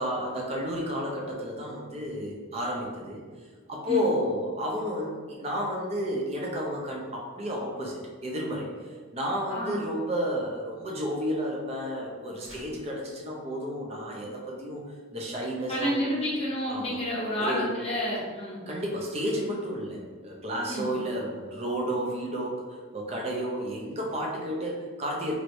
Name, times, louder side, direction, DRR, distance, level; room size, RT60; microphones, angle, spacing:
voice 1, 0.0-3.2 3.7-8.7 9.1-14.8 15.1-16.0 16.7-17.0 17.4-17.7 18.7-22.6 22.9-25.3, equal, 30° right, -2 dB, 0.6 m, -31 dB
voice 2, 9.5-9.9 15.7-18.6 20.7-20.9, equal, 30° left, -6 dB, 0.8 m, -30 dB
sound 1, 12.3-12.9, equal, 85° right, 1.2 m, -49 dB
3.1 x 3.1 x 2.6 m, 1.5 s
head